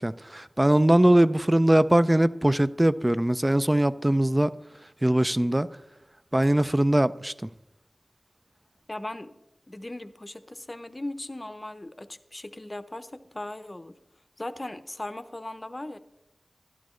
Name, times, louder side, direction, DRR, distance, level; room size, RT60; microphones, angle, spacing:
voice 1, 0.0-4.5 5.0-5.7 6.3-7.5, right 1 dB, 20° right, 0.3 m, -21 dB
voice 2, 8.9-9.3 9.7-14.0 14.4-16.0, left 1 dB, 30° left, 0.6 m, -38 dB
12.0 x 11.5 x 3.1 m
wide cardioid pair, 50°, 0 cm